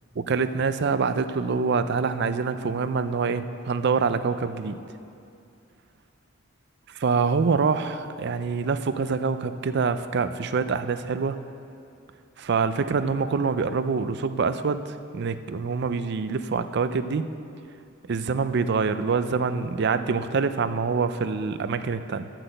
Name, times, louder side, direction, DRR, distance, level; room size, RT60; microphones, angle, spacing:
voice 1, 0.2-4.8 6.9-11.4 12.4-17.3 18.1-22.3, right 5 dB, 60° right, 11 dB, 0.5 m, -25 dB
12.0 x 6.0 x 7.8 m, 2.6 s
head